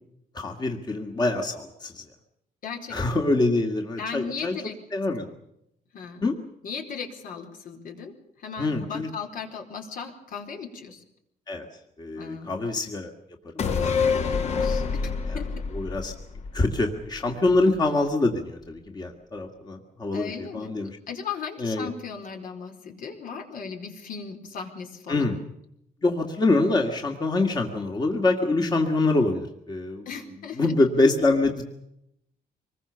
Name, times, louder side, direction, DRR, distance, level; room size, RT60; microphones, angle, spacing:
voice 1, 0.3-2.0 2.9-4.6 4.9-5.4 6.2-6.3 8.6-9.1 11.5-11.7 12.0-13.1 15.3-15.4 15.7-16.1 16.5-20.9 21.6-21.9 25.1-25.4 26.0-30.3 30.6-31.6, left 2 dB, 25° left, 3 dB, 2.2 m, -25 dB
voice 2, 2.6-3.3 4.0-4.8 5.9-6.2 6.6-11.0 12.2-12.7 13.8-14.8 15.3-15.5 20.1-20.7 21.1-25.3 30.1-30.7, left 6 dB, 65° left, 3 dB, 4.4 m, -37 dB
sound 1, 13.6-17.2 17.5-17.6, left 5 dB, 45° left, 2.0 m, -27 dB
25.5 x 21.0 x 7.0 m, 0.79 s
cardioid pair, 155°, 16 cm